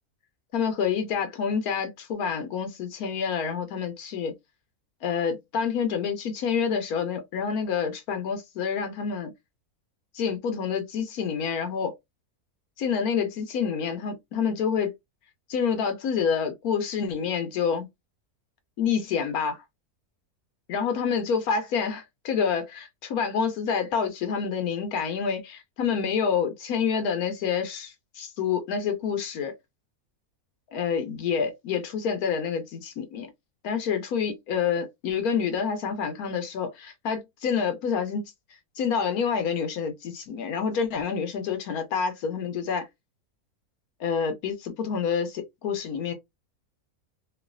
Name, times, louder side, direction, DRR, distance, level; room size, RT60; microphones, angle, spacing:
voice 1, 0.5-4.3 5.0-9.3 10.1-11.9 12.8-14.9 15.5-17.9 18.8-19.6 20.7-29.5 30.7-33.3 33.6-38.3 38.8-42.9 44.0-46.1, left 6 dB, 80° left, 1.1 m, -28 dB
3.1 x 2.5 x 2.4 m
omnidirectional pair, 1.6 m